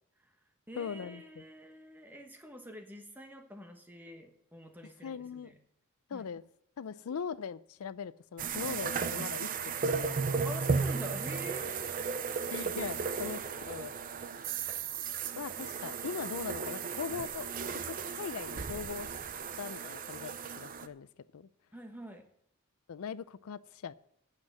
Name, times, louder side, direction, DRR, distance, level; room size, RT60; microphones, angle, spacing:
voice 1, 0.2-5.6 6.1-6.3 10.3-12.0 21.7-22.2, equal, 10° right, 1.2 m, -47 dB
voice 2, 0.8-1.4 5.0-5.5 6.1-6.4 6.8-10.2 12.5-13.9 15.4-17.5 17.8-19.1 19.6-20.3 20.6-21.1 21.3-21.5 22.9-23.9, left 7 dB, 85° left, 0.4 m, -40 dB
sound 1, 8.4-20.9, right 5 dB, 40° right, 0.5 m, -35 dB
9.0 x 7.6 x 7.4 m
head